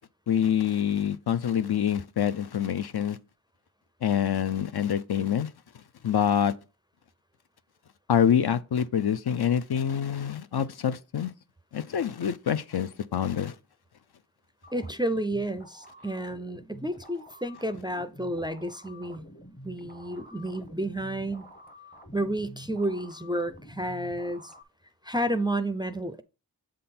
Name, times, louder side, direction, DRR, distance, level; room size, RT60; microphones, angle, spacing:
voice 1, 0.3-3.2 4.0-5.5 6.0-6.5 8.1-11.3 11.7-13.5, left 9 dB, 65° left, 0.5 m, -26 dB
sound 1, 14.6-24.6, equal, 20° left, 0.8 m, -49 dB
voice 2, 14.7-19.2 19.6-21.5 22.1-24.5 25.0-26.2, right 1 dB, 10° right, 0.4 m, -31 dB
7.7 x 3.8 x 4.2 m
wide cardioid pair, 55°, 42 cm